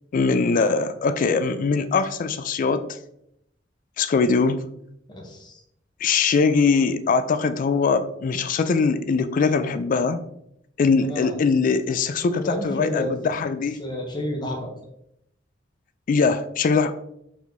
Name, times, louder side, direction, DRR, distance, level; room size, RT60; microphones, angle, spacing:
voice 1, 0.1-2.9 4.0-4.6 6.0-10.2 10.8-13.8 16.1-16.9, left 4 dB, 45° left, 12 dB, 0.3 m, -21 dB
voice 2, 5.1-5.5 11.1-11.3 12.4-13.1 13.8-14.7, left 1 dB, 25° left, 1 dB, 0.7 m, -30 dB
4.5 x 4.2 x 2.6 m, 0.76 s
head